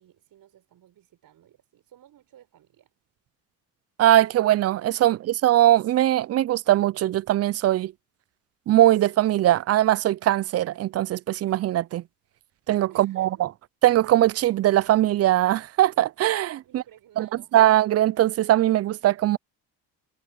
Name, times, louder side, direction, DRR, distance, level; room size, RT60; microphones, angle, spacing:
voice 1, 0.0-2.9 5.1-5.2 12.9-13.4 16.6-17.6, right 11 dB, 65° right, 6.3 m, -55 dB
voice 2, 4.0-7.9 8.7-12.0 12.7-13.5 13.8-16.8 17.2-17.3 17.5-19.4, right 13 dB, 40° right, 0.4 m, -21 dB
cardioid pair, 95°, 37 cm